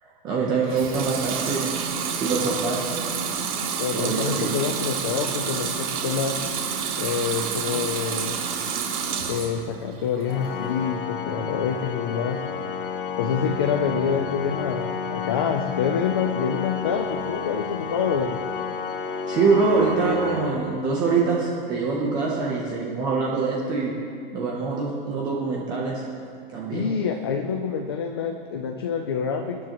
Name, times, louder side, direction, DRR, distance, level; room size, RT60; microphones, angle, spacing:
voice 1, 0.0-1.7 2.2-2.8 3.9-4.5 19.3-24.0 24.3-26.0 26.5-26.9, right 4 dB, 15° right, -3 dB, 0.8 m, -24 dB
Water tap faucet / Sink (filling or washing) / Liquid, 0.6-9.6 10.0-10.7, right 6 dB, 35° right, 2.2 m, -29 dB
voice 2, 3.8-6.4 7.0-8.4 9.3-12.4 13.2-18.4 26.7-29.6, left 6 dB, 25° left, 5 dB, 0.4 m, -27 dB
Organ, 10.3-21.2, left 6 dB, 60° left, 1.0 m, -31 dB
25.0 x 10.5 x 3.0 m, 2.4 s
hypercardioid pair, 175°, 30 cm